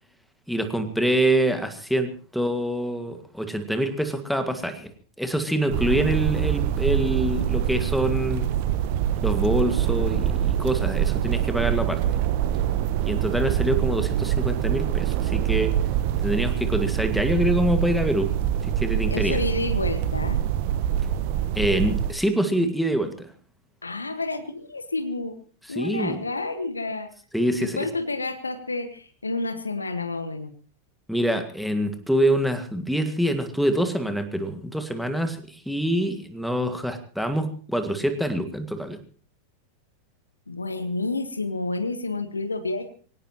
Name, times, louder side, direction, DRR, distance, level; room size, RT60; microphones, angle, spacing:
voice 1, 0.5-4.9 5.2-8.5 9.2-12.0 13.0-15.7 16.2-18.3 18.6-19.4 21.6-23.3 25.7-26.2 27.3-27.9 31.1-39.0, right 1 dB, ahead, 7 dB, 2.0 m, -25 dB
sound 1, 5.7-22.1, right 10 dB, 50° right, 1.1 m, -25 dB
voice 2, 19.1-20.4 23.8-25.4 25.7-27.1 27.6-30.5 40.5-43.0, left 3 dB, 80° left, 10 dB, 1.6 m, -29 dB
23.5 x 18.0 x 3.1 m, 0.41 s
figure-of-eight pair, 90°, 0 cm